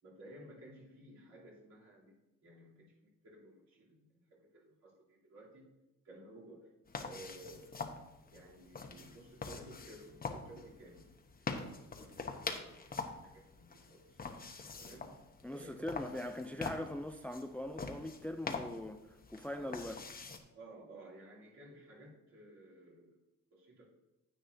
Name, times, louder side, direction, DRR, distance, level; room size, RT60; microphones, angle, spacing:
voice 1, 0.0-5.7 6.0-6.7 7.0-7.8 8.3-14.2 14.8-15.2 15.5-16.7 19.5-19.8 20.5-23.2 23.5-23.9, right 1 dB, 60° right, 3.3 m, -56 dB
sound 1, 6.9-20.4, left 4 dB, 30° left, 1.0 m, -45 dB
voice 2, 15.4-20.0, left 1 dB, 5° left, 0.4 m, -41 dB
10.0 x 8.6 x 2.7 m
cardioid pair, 90°, 30 cm